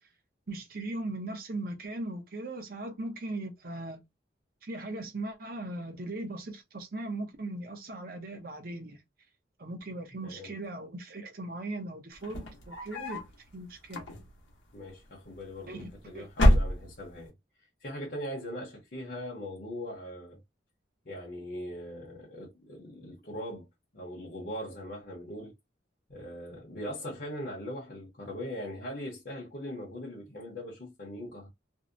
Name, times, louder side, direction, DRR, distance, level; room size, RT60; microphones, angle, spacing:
voice 1, 0.5-4.0 4.6-9.0 9.6-13.2 13.5-14.1 15.7-15.9 16.1-16.3, right 2 dB, 50° right, 0.7 m, -38 dB
voice 2, 10.2-10.5 14.7-17.3 17.8-20.4 21.0-23.7 23.9-25.5 26.1-31.5, equal, 50° left, 0.8 m, -40 dB
sound 1, 12.2-13.3 13.8-14.5 15.5-16.0 16.3-17.2, equal, 85° left, 0.8 m, -26 dB
2.6 x 2.1 x 2.5 m
head